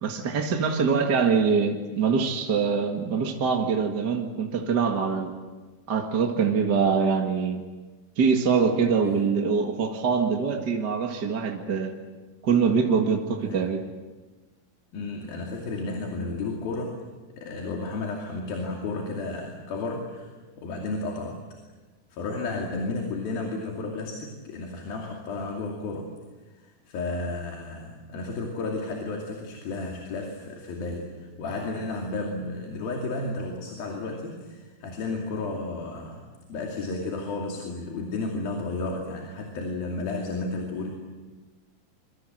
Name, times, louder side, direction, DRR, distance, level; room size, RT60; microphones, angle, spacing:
voice 1, 0.0-5.4 5.9-7.6 8.2-11.9 12.4-13.8, right 5 dB, 40° right, 3 dB, 1.7 m, -24 dB
voice 2, 8.9-9.2 13.4-13.7 14.9-17.0 17.4-21.4 22.1-26.1 26.6-36.2 36.5-41.0, left 3 dB, 80° left, 1 dB, 4.5 m, -33 dB
27.0 x 24.0 x 7.9 m, 1.3 s
omnidirectional pair, 4.2 m